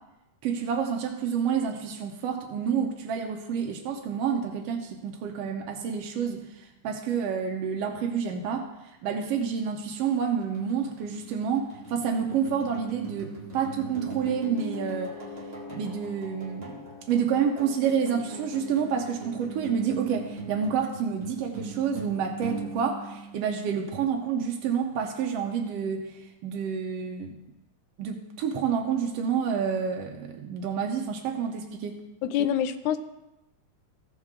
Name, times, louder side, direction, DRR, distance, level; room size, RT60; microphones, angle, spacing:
voice 1, 0.4-8.7 9.0-15.1 15.7-16.8 17.1-27.4 28.0-32.0, right 7 dB, 85° right, 3 dB, 1.4 m, -29 dB
sound 1, 9.9-24.1, right 2 dB, 15° right, 1.7 m, -40 dB
voice 2, 32.2-33.0, left 9 dB, 80° left, 10 dB, 1.9 m, -26 dB
15.5 x 6.4 x 3.6 m, 0.94 s
omnidirectional pair, 3.8 m